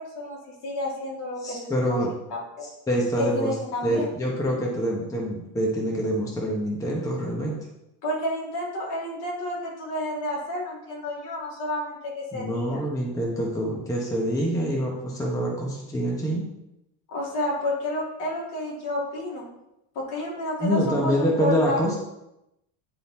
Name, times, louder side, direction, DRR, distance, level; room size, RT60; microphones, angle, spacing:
voice 1, 0.0-2.0 2.3-2.7 3.2-4.1 8.0-12.8 17.1-19.4 19.9-21.8, left 1 dB, 60° left, -4 dB, 2.8 m, -30 dB
voice 2, 1.4-2.1 2.9-3.5 3.8-7.6 12.3-16.5 20.6-22.0, equal, 5° left, -2 dB, 0.9 m, -26 dB
9.6 x 3.8 x 4.2 m, 0.88 s
cardioid pair, 165°, 46 cm